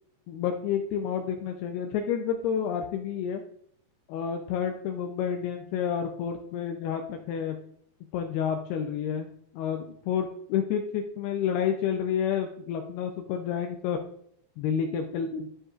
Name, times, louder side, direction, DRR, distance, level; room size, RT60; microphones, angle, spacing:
voice 1, 0.3-3.4 4.1-7.6 8.1-14.0 14.6-15.5, left 8 dB, 85° left, 4 dB, 2.3 m, -30 dB
12.0 x 5.2 x 2.4 m, 0.67 s
omnidirectional pair, 5.2 m